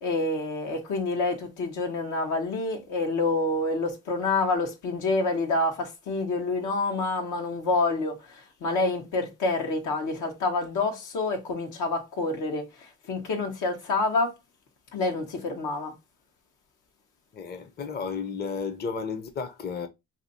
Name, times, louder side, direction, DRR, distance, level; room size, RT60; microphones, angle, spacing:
voice 1, 0.0-14.3 14.9-15.9, left 3 dB, 80° left, 1.2 m, -28 dB
voice 2, 17.3-19.9, left 5 dB, 35° left, 0.6 m, -33 dB
2.8 x 2.7 x 4.0 m
cardioid pair, 90°, 30 cm